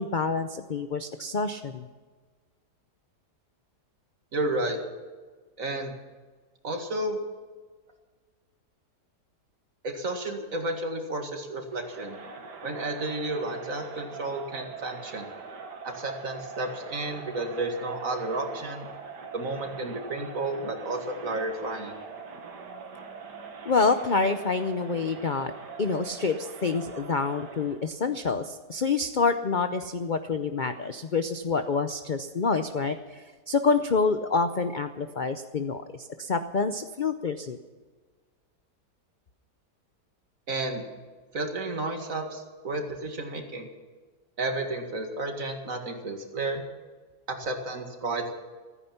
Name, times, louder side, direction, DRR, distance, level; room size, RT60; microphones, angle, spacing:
voice 1, 0.0-1.8 23.6-25.5 25.8-37.6, left 4 dB, 50° left, 8 dB, 0.5 m, -27 dB
voice 2, 4.3-4.8 5.6-5.9 6.6-7.2 9.8-12.2 12.6-15.3 15.8-18.9 19.3-22.0 40.5-40.8 41.3-43.7 44.4-46.6 47.3-48.4, right 2 dB, 50° right, 4 dB, 2.4 m, -32 dB
Crowd, 11.7-27.9, right 4 dB, 80° right, 2.1 m, -43 dB
15.5 x 14.0 x 5.8 m, 1.4 s
omnidirectional pair, 1.8 m